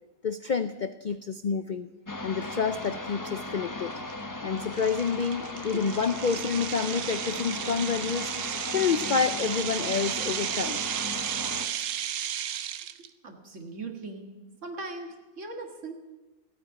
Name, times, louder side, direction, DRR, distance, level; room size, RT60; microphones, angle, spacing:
voice 1, 0.2-1.9 2.2-3.9 4.4-8.3 8.7-10.8, left 6 dB, 75° left, 11 dB, 0.4 m, -28 dB
sound 1, 2.1-11.7, left 2 dB, 15° left, 0.7 m, -37 dB
sound 2, 2.8-2.9 3.5-3.7 4.1-4.2 4.7-13.1, right 10 dB, 75° right, 1.2 m, -34 dB
voice 2, 13.0-14.4 14.6-15.9, right 3 dB, 55° right, 4 dB, 2.2 m, -39 dB
16.0 x 8.8 x 9.9 m, 1.2 s
omnidirectional pair, 1.6 m